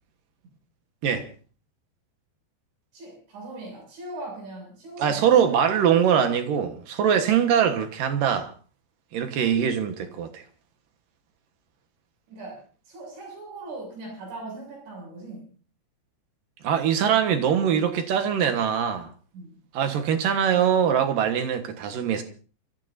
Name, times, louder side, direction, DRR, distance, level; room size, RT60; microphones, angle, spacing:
voice 1, 2.9-5.2 12.3-15.5 19.3-19.6, right 2 dB, 85° right, 9.7 m, -39 dB
voice 2, 5.0-8.5 9.1-10.4 16.6-19.1 19.7-22.2, right 8 dB, 60° right, 2.6 m, -22 dB
29.5 x 14.5 x 2.7 m
omnidirectional pair, 5.1 m